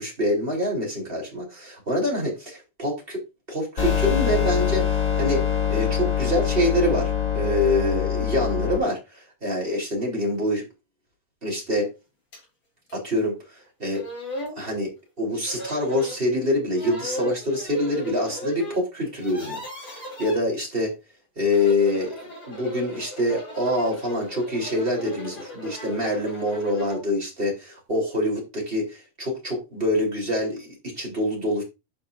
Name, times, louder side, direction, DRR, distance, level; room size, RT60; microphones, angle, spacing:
voice 1, 0.0-3.2 3.5-5.4 5.7-10.6 11.4-11.9 12.9-14.0 14.5-14.9 15.2-19.6 19.9-20.9 21.3-31.6, left 1 dB, 15° right, -2 dB, 2.9 m, -25 dB
sound 1, 3.8-8.8, left 9 dB, 70° left, 0.7 m, -24 dB
sound 2, 12.3-12.4 12.9-13.0 13.6-13.7 13.9-14.6 15.5-16.2 16.7-18.8 19.1-20.4 21.4-27.1, left 1 dB, 25° left, 2.9 m, -37 dB
11.5 x 5.6 x 2.6 m, 0.25 s
omnidirectional pair, 5.8 m